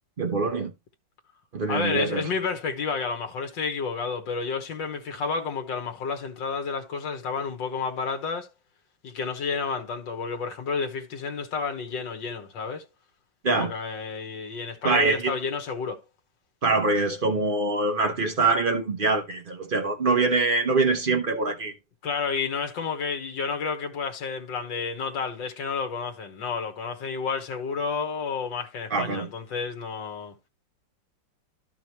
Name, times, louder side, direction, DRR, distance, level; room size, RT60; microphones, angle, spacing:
voice 1, 0.2-0.7 1.5-2.3 13.4-13.7 14.8-15.3 16.6-21.7 28.9-29.3, right 3 dB, 40° right, 0.9 m, -24 dB
voice 2, 1.7-8.5 9.0-12.8 13.5-16.0 22.0-30.4, left 5 dB, 80° left, 2.0 m, -30 dB
12.5 x 5.3 x 3.0 m
omnidirectional pair, 1.9 m